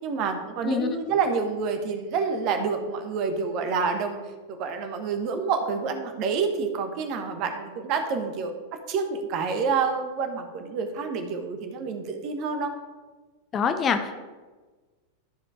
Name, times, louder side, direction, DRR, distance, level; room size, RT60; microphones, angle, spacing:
voice 1, 0.0-4.2 4.5-8.5 8.9-12.7, right 5 dB, 40° right, 6 dB, 1.3 m, -28 dB
voice 2, 0.6-0.9 13.5-14.2, left 6 dB, 25° left, 7 dB, 0.7 m, -25 dB
12.5 x 5.2 x 4.8 m, 1.3 s
figure-of-eight pair, 90°, 0 cm